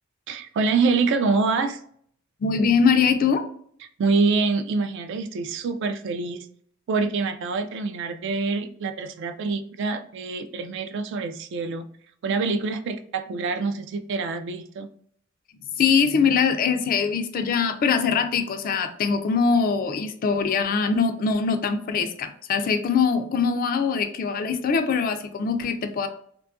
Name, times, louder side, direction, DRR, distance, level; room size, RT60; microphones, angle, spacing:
voice 1, 0.3-1.8 4.0-6.5 6.9-11.9 12.2-14.9, right 4 dB, 60° right, 9 dB, 0.3 m, -25 dB
voice 2, 2.4-3.4 15.8-26.1, left 5 dB, 45° left, 7 dB, 0.3 m, -22 dB
2.6 x 2.3 x 2.4 m, 0.62 s
head